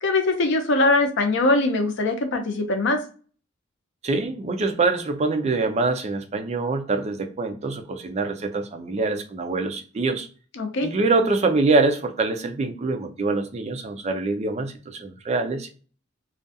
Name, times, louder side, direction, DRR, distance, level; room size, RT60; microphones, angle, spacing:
voice 1, 0.0-3.0 10.6-10.9, left 2 dB, 60° left, 5 dB, 0.6 m, -22 dB
voice 2, 4.0-10.3 10.8-15.7, right 3 dB, 35° right, 6 dB, 0.4 m, -24 dB
2.4 x 2.3 x 2.6 m, 0.38 s
head